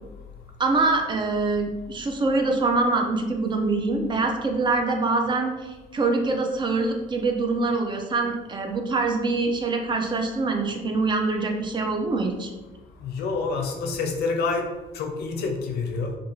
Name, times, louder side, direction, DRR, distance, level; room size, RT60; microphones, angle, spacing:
voice 1, 0.6-12.5, right 3 dB, 30° right, 3 dB, 0.4 m, -24 dB
voice 2, 13.0-14.7 14.9-16.1, left 4 dB, 70° left, 3 dB, 0.5 m, -27 dB
2.5 x 2.3 x 2.9 m, 1.1 s
cardioid pair, 110°, 17 cm